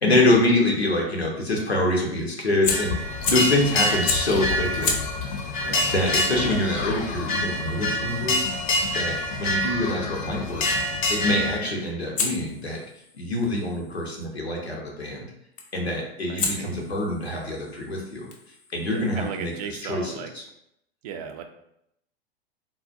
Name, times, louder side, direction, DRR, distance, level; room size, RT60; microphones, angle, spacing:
voice 1, 0.0-3.0 3.3-4.9 5.9-8.4 8.9-10.7 11.1-12.8 13.1-15.3 15.7-18.3 18.7-20.1, left 1 dB, 85° left, -1 dB, 1.0 m, -25 dB
sound 1, 2.6-11.6, left 2 dB, 55° left, 0.8 m, -26 dB
Fire, 2.6-3.6 4.0-4.4 4.8-9.7 12.1-14.3 15.6-15.9 16.4-19.8, left 4 dB, 25° left, 0.6 m, -34 dB
voice 2, 5.6-5.9 16.3-16.8 18.9-20.3 21.0-21.4, right 7 dB, 40° right, 6 dB, 0.4 m, -36 dB
3.8 x 2.4 x 2.5 m, 0.77 s
figure-of-eight pair, 95°, 31 cm